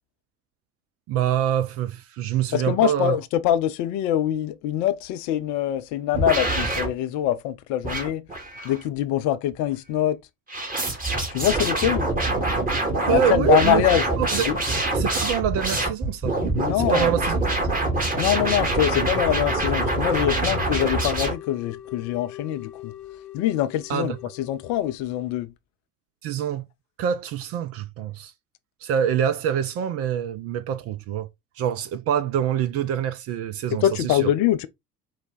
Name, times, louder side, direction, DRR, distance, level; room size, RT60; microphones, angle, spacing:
voice 1, 1.1-3.2 13.1-13.8 14.2-14.5 14.9-16.4 16.9-17.4 23.9-24.2 26.2-26.6 27.0-28.3 28.8-31.3 31.6-34.3, right 9 dB, 35° right, 0.4 m, -25 dB
voice 2, 2.5-8.3 8.6-10.2 11.3-12.1 13.1-14.0 14.4-14.6 16.5-17.1 18.1-22.9 23.3-25.5 33.8-34.7, left 12 dB, 40° left, 0.4 m, -24 dB
sound 1, 6.1-6.9 7.8-8.8 10.5-21.3, right 2 dB, 20° right, 1.4 m, -25 dB
sound 2, 18.6-25.4, left 14 dB, 85° left, 0.7 m, -40 dB
4.7 x 2.1 x 3.9 m
figure-of-eight pair, 65°, 47 cm